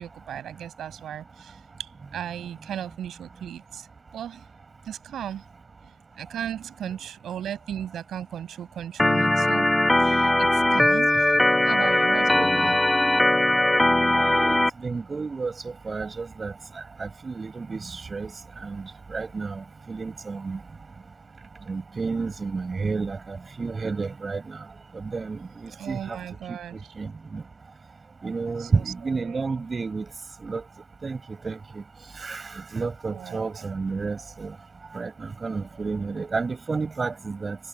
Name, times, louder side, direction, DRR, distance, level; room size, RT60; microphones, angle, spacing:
voice 1, 0.0-3.9 4.1-4.4 4.9-5.4 5.8-5.9 6.2-9.7 10.0-12.8 25.7-26.8 28.6-29.6 33.1-33.7, right 10 dB, 70° right, 7.3 m, -36 dB
Organ, 9.0-14.7, left 1 dB, 10° left, 0.9 m, -20 dB
voice 2, 12.4-12.8 14.1-16.5 17.0-18.3 18.6-20.6 21.7-24.6 24.9-26.2 26.5-26.6 27.0-27.4 28.2-30.1 30.4-30.6 31.0-31.2 31.4-31.8 32.2-34.5 34.9-37.6, right 4 dB, 30° right, 6.9 m, -31 dB
cardioid pair, 90°, 0 cm